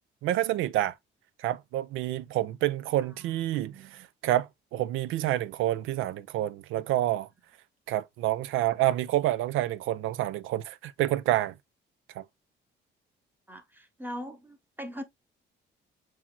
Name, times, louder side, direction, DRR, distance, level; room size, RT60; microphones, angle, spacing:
voice 1, 0.2-1.0 1.4-7.3 7.9-11.6 12.1-12.2, right 14 dB, 85° right, 0.4 m, -28 dB
voice 2, 3.2-4.1 13.5-15.0, equal, 10° right, 0.9 m, -42 dB
7.2 x 3.0 x 2.3 m
cardioid pair, 90°, 20 cm